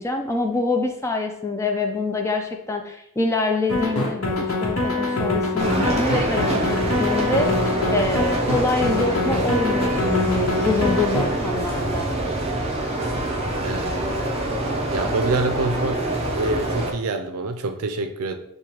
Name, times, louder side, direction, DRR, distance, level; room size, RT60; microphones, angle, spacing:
voice 1, 0.0-12.1, left 3 dB, 15° left, 3 dB, 0.3 m, -25 dB
sound 1, 3.7-11.3, left 2 dB, 70° left, 0.9 m, -24 dB
sound 2, 5.6-16.9, right 1 dB, 30° right, 0.6 m, -25 dB
voice 2, 13.6-14.0 14.3-14.5 14.9-16.0 16.3-18.4, right 3 dB, 80° right, 7 dB, 0.4 m, -26 dB
6.4 x 2.3 x 2.9 m, 0.76 s
head